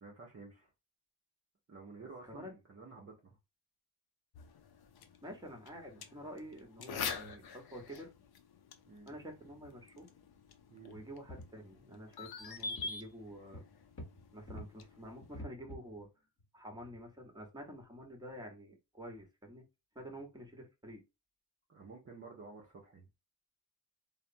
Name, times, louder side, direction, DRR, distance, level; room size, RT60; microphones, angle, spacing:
voice 1, 0.0-0.7 1.7-3.4 8.9-9.1 10.7-11.0 21.7-23.1, right 4 dB, 30° right, 0.7 m, -52 dB
sound 1, 4.3-15.4, left 5 dB, 55° left, 0.6 m, -46 dB
voice 2, 5.2-8.1 9.1-10.1 10.8-13.6 14.3-16.1 16.5-19.6 19.9-21.0, equal, 10° right, 1.0 m, -48 dB
sound 2, 9.0-9.2 9.5-9.7 10.0-10.1 11.0-11.7 12.2-12.4 12.8-12.9 13.5-14.7 15.2-16.0 16.4-16.5 16.7-17.0 17.6-17.7, left 1 dB, 30° left, 1.0 m, -49 dB
3.2 x 2.0 x 2.5 m
cardioid pair, 75°, 45 cm